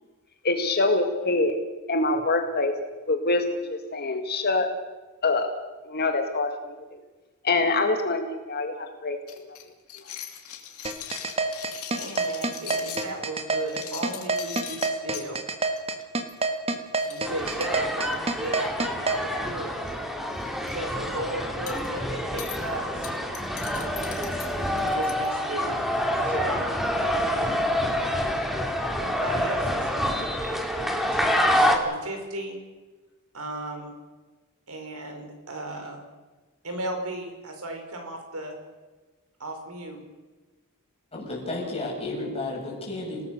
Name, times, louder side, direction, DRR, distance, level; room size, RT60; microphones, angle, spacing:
voice 1, 0.4-1.6 1.9-2.7 3.1-4.7 5.2-5.5 5.9-6.7 7.4-9.2, left 2 dB, 45° left, 5 dB, 1.8 m, -25 dB
sound 1, 9.3-13.1 13.6-15.3 15.8-16.0 16.3-16.4 16.7-16.8 17.0-18.4 19.1-19.5 19.8-19.9 20.3-20.7 21.7-21.9 22.4-22.6 23.0-25.3, left 10 dB, 80° left, 2.8 m, -40 dB
sound 2, 10.8-19.2, right 3 dB, 25° right, 1.6 m, -26 dB
voice 2, 11.9-15.4 17.0-18.7 19.0-19.8 20.6-23.1 24.6-25.8 26.2-27.6 29.0-30.3 31.0-32.6 33.3-33.9 34.7-36.0 36.6-38.5 39.4-40.0, right 2 dB, 75° right, 4 dB, 5.1 m, -35 dB
sound 3, 17.2-31.8, equal, ahead, 2.4 m, -27 dB
voice 3, 41.1-43.2, left 2 dB, 25° left, -2 dB, 7.4 m, -32 dB
28.0 x 18.5 x 6.6 m, 1.2 s
head